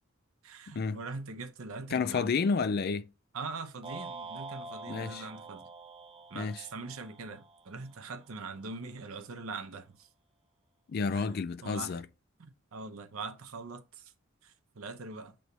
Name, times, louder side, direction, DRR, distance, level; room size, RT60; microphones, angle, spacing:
voice 1, 0.4-2.3 3.3-5.7 6.3-10.1 11.1-11.3 11.6-12.0 12.4-14.1 14.4-15.3, right 4 dB, 80° right, 0.7 m, -42 dB
voice 2, 1.9-3.1 4.9-5.2 6.3-6.6 10.9-12.1, left 5 dB, 45° left, 0.3 m, -30 dB
sound 1, 3.8-8.1, right 3 dB, 25° right, 0.4 m, -46 dB
7.9 x 3.1 x 4.2 m
head